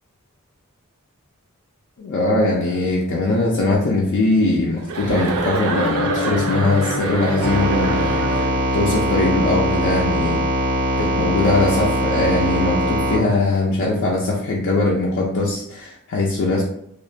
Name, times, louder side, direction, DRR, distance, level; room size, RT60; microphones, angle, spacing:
voice 1, 2.0-8.5 8.7-10.4 11.0-16.6, left 2 dB, 60° left, -2 dB, 0.4 m, -21 dB
Chuckle chortle, 4.9-8.6, right 3 dB, 70° right, 0.4 m, -26 dB
sound 1, 5.5-9.4, left 3 dB, 5° left, 0.6 m, -29 dB
sound 2, 7.4-13.2, equal, 85° right, 0.8 m, -21 dB
2.4 x 2.1 x 2.6 m, 0.71 s
head